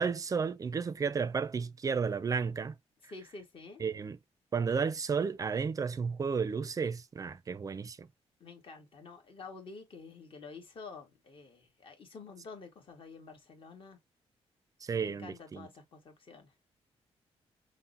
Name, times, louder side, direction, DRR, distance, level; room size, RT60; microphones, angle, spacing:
voice 1, 0.0-2.7 3.8-4.2 4.5-8.1 14.8-15.7, right 5 dB, 30° right, 0.4 m, -32 dB
voice 2, 3.1-3.8 8.4-14.0 14.9-16.5, left 4 dB, 50° left, 1.4 m, -49 dB
5.7 x 2.1 x 2.5 m
cardioid pair, 130°, 11 cm